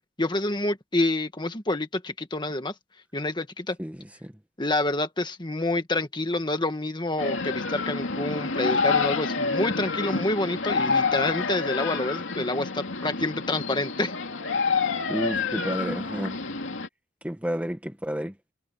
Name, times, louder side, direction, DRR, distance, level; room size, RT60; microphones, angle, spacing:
voice 1, 0.2-2.7 3.1-3.8 4.6-14.2, left 2 dB, 25° left, 1.7 m, -28 dB
voice 2, 3.8-4.3 15.1-16.4 17.2-18.3, equal, 5° right, 1.6 m, -31 dB
sound 1, 7.2-16.9, left 4 dB, 85° left, 2.5 m, -28 dB
head